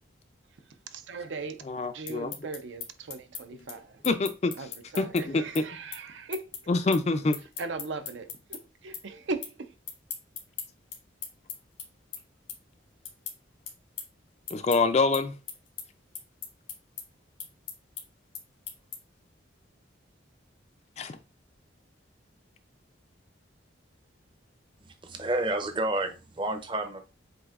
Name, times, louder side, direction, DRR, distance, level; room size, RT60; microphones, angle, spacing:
voice 1, 0.9-4.0 4.6-6.5 7.6-9.7, right 3 dB, 75° right, 0.6 m, -38 dB
voice 2, 1.6-2.3 3.5-3.6 4.0-4.7 5.0-5.6 6.7-7.4 14.5-15.4 21.0-21.2, left 3 dB, 35° left, 0.3 m, -26 dB
sound 1, 2.1-8.6 8.9-9.6 9.8-19.2, left 7 dB, 90° left, 1.6 m, -40 dB
voice 3, 24.8-27.0, right 2 dB, 25° right, 0.6 m, -30 dB
7.7 x 2.6 x 2.4 m
head